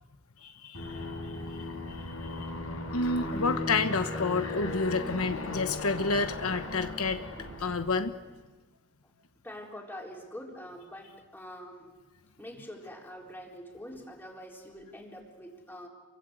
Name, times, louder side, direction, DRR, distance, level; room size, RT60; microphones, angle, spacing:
voice 1, 0.4-1.6 1.9-2.4 2.9-7.2 7.6-8.1, left 3 dB, 90° left, 8 dB, 1.2 m, -30 dB
Aircraft, 0.7-8.1, left 1 dB, 70° left, 7.0 m, -37 dB
voice 2, 9.4-11.9 12.4-15.9, equal, 10° left, -1 dB, 3.7 m, -45 dB
28.5 x 23.5 x 8.0 m, 1.3 s
head